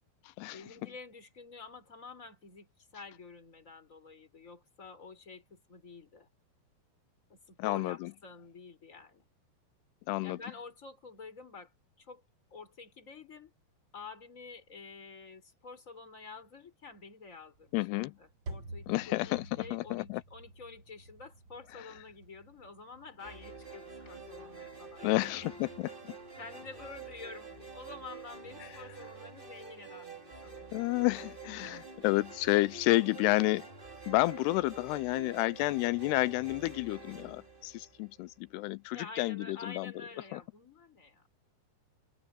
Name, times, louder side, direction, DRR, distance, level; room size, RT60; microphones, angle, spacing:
voice 1, 0.5-6.3 7.3-9.3 10.2-12.2 12.5-13.5 13.9-25.5 26.4-30.7 31.6-31.9 38.9-41.3, left 4 dB, 15° left, 5.2 m, -49 dB
voice 2, 7.6-8.1 10.1-10.4 17.7-18.1 18.9-20.2 21.8-21.9 25.0-25.9 30.7-33.7 34.1-39.9 40.3-40.4, left 19 dB, 80° left, 2.5 m, -30 dB
sound 1, 17.5-28.9, right 2 dB, 55° right, 1.3 m, -52 dB
sound 2, 23.2-38.4, right 4 dB, 20° right, 1.4 m, -48 dB
omnidirectional pair, 4.9 m